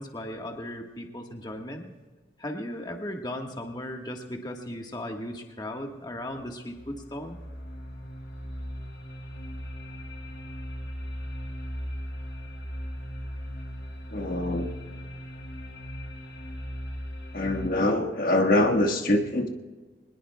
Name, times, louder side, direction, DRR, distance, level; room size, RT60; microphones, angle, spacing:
voice 1, 0.0-1.9 2.4-7.4, left 1 dB, 25° left, 2 dB, 1.4 m, -36 dB
sound 1, 6.4-17.7, equal, 85° left, 5.4 m, -38 dB
voice 2, 14.1-14.7 17.3-19.5, left 1 dB, 55° left, 3 dB, 1.5 m, -24 dB
23.5 x 20.5 x 2.3 m, 1.3 s
head